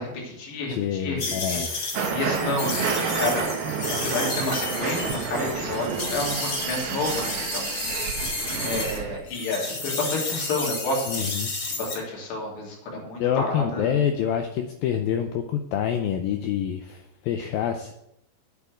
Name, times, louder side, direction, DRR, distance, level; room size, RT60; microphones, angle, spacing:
voice 1, 0.0-1.2 1.5-3.4 3.9-8.1 8.6-11.3 11.7-14.0, left 2 dB, 70° left, -3 dB, 5.0 m, -30 dB
voice 2, 0.7-1.7 11.1-11.5 13.2-17.9, left 9 dB, 85° left, 6 dB, 2.0 m, -27 dB
sound 1, 1.2-9.0 9.3-11.9, left 3 dB, 40° left, 2.3 m, -32 dB
sound 2, 1.9-9.2, right 6 dB, 70° right, 3.0 m, -29 dB
8.6 x 7.4 x 8.1 m, 0.80 s
omnidirectional pair, 5.1 m